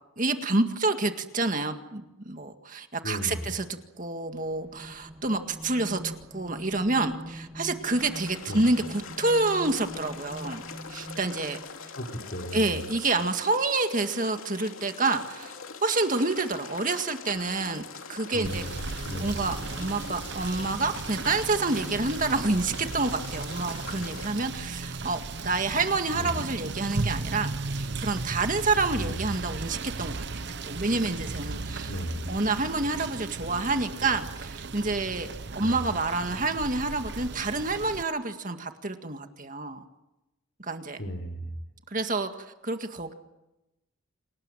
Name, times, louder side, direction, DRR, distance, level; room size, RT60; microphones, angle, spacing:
voice 1, 0.2-10.6 10.9-11.6 12.5-17.8 18.1-18.7 18.9-27.5 27.7-32.0 32.3-35.3 35.5-39.8 40.6-41.0 41.9-42.3 42.6-43.1, right 3 dB, 40° right, 6 dB, 1.9 m, -28 dB
voice 2, 3.0-3.4 8.5-8.6 12.0-12.8 18.3-18.8 19.1-19.4 26.2-26.3 28.9-29.2 31.9-32.3 35.6-35.8 41.0-41.5, equal, 55° left, 3 dB, 3.6 m, -35 dB
sound 1, 4.3-12.0, equal, 10° right, 1.4 m, -43 dB
sound 2, 7.8-24.3, left 5 dB, 85° left, 2.9 m, -43 dB
Rain / Motor vehicle (road), 18.4-38.0, right 3 dB, 55° right, 1.0 m, -36 dB
28.5 x 19.5 x 9.1 m, 0.96 s
head